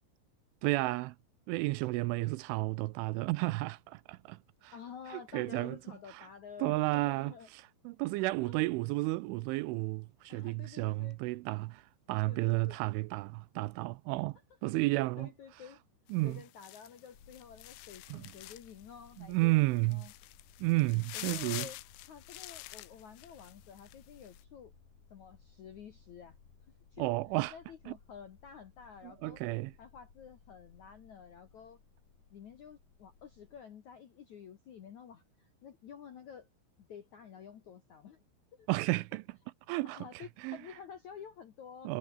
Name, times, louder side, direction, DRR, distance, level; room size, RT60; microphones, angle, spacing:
voice 1, 0.6-1.2 1.5-4.7 5.1-5.8 6.1-6.3 6.6-11.8 12.1-15.3 16.1-16.4 18.1-18.2 19.2-20.0 20.6-21.7 27.0-27.5 27.9-28.0 29.0-29.7 38.7-39.4 39.7-40.6 41.8-42.0, right 21 dB, 85° right, 3.0 m, -32 dB
voice 2, 4.7-7.5 8.4-8.6 10.3-11.2 12.2-12.8 14.6-14.7 15.2-15.8 16.2-20.1 21.1-21.8 22.1-24.7 25.1-26.4 26.9-27.1 27.5-29.4 29.8-31.8 32.3-36.5 36.8-38.2 38.5-38.7 39.7-42.0, left 7 dB, 65° left, 1.9 m, -50 dB
sound 1, 16.1-18.8 19.2-19.3 19.8-23.9 24.2-24.4, left 18 dB, 85° left, 3.5 m, -46 dB
sound 2, 17.1-33.6, left 6 dB, 40° left, 4.1 m, -62 dB
omnidirectional pair, 5.8 m